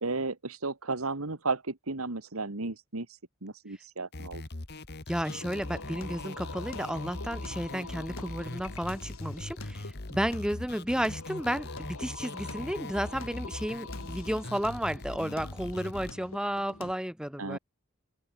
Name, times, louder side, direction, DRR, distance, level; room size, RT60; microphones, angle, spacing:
voice 1, 0.0-3.1 3.4-4.4 17.4-17.6, right 3 dB, 90° right, 2.0 m, -33 dB
sound 1, 4.1-16.1, left 2 dB, 50° left, 1.6 m, -41 dB
voice 2, 5.1-17.6, equal, 5° right, 2.2 m, -33 dB
Singing, 5.3-16.9, left 3 dB, 80° left, 6.0 m, -45 dB
open air
head